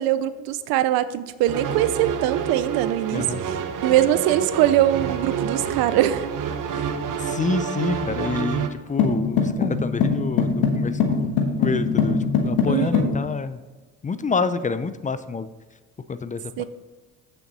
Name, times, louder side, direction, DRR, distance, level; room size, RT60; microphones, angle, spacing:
voice 1, 0.0-6.3 6.7-6.9 12.7-13.1 16.6-16.7, right 13 dB, 85° right, 14 dB, 0.6 m, -22 dB
sound 1, 1.5-8.7, right 7 dB, 60° right, 1.0 m, -28 dB
voice 2, 7.2-11.3 11.6-13.6 14.0-15.5 16.1-16.6, left 4 dB, 20° left, 13 dB, 0.5 m, -27 dB
sound 2, 9.0-13.2, left 5 dB, 85° left, 1.5 m, -22 dB
8.5 x 6.9 x 4.1 m, 1.3 s
cardioid pair, 85°, 35 cm